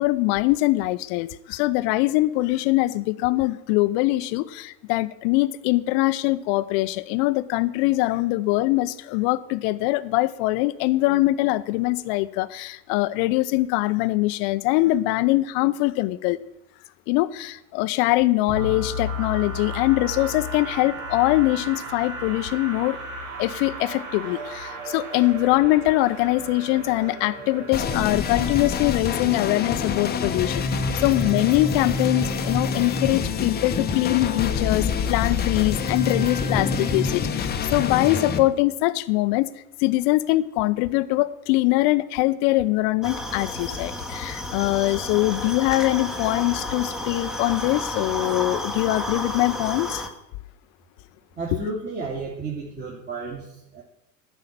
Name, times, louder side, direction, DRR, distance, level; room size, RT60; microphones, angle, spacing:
voice 1, 0.0-16.4 17.1-23.0 23.4-39.5 39.8-50.1 51.5-51.6, left 18 dB, 40° left, 0.6 m, -23 dB
sound 1, 18.5-30.3, equal, 60° right, 2.6 m, -35 dB
sound 2, 27.7-38.4, left 5 dB, 20° left, 0.9 m, -26 dB
sound 3, 43.0-50.1, left 1 dB, ahead, 1.1 m, -31 dB
voice 2, 51.4-53.8, right 3 dB, 20° right, 2.2 m, -32 dB
11.5 x 5.7 x 8.4 m
hypercardioid pair, 95°, 50 cm